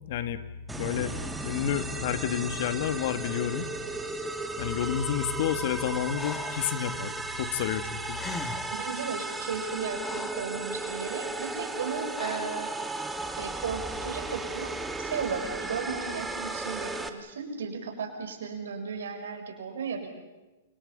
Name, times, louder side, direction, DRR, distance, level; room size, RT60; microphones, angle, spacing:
voice 1, 0.1-0.4 0.8-1.1 1.4-3.7 4.6-8.2, left 9 dB, 60° left, 10 dB, 2.2 m, -30 dB
sound 1, 0.7-17.1, right 2 dB, 10° right, 2.1 m, -35 dB
Breathing, 6.2-6.7 7.9-8.0 8.1-8.8 9.5-10.6 12.1-12.7, left 4 dB, 15° left, 2.6 m, -39 dB
voice 2, 8.7-12.7 13.4-14.7 15.0-20.1, right 6 dB, 80° right, 4 dB, 6.1 m, -35 dB
29.0 x 28.0 x 5.6 m, 1.1 s
hypercardioid pair, 125°, 0 cm